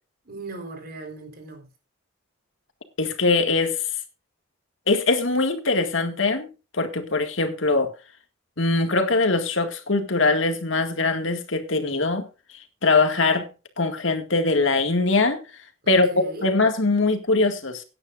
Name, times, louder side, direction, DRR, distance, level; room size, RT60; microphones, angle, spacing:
voice 1, 0.2-1.7 15.8-16.5, right 2 dB, 50° right, 4.0 m, -38 dB
voice 2, 3.0-3.9 4.9-6.5 6.7-7.9 8.6-12.2 12.5-13.5 13.8-15.4 15.9-16.1 16.4-17.8, left 3 dB, 70° left, 2.0 m, -22 dB
18.5 x 9.9 x 2.6 m
head